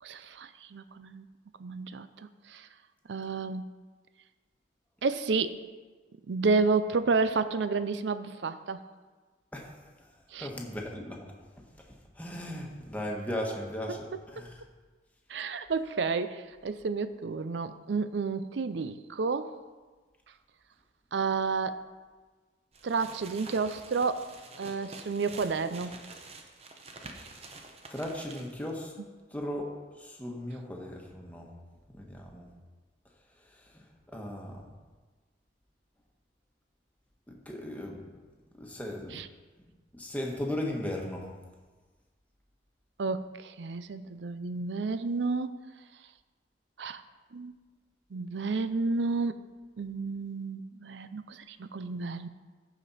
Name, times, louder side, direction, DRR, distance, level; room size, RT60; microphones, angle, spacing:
voice 1, 0.0-1.3 1.6-2.7 3.1-3.6 5.0-5.6 6.3-8.8 10.3-10.5 13.9-14.0 14.4-14.5 15.3-19.5 21.1-21.8 22.8-24.3 24.6-26.0 29.0-29.1 39.1-39.3 43.0-45.6 46.8-47.0 47.3-47.5 48.1-49.4 49.8-52.3, right 4 dB, 80° right, 12 dB, 0.5 m, -31 dB
voice 2, 10.4-11.2 11.6-11.7 12.2-14.1 14.3-14.5 27.9-28.9 29.3-29.7 30.0-31.5 31.9-32.5 33.7-33.8 34.1-34.6 37.3-38.0 38.6-39.1 39.9-41.2, left 1 dB, 10° left, 0 dB, 1.2 m, -36 dB
sound 1, 22.7-28.7, right 3 dB, 35° right, 0.8 m, -48 dB
14.5 x 5.1 x 4.2 m, 1.3 s
head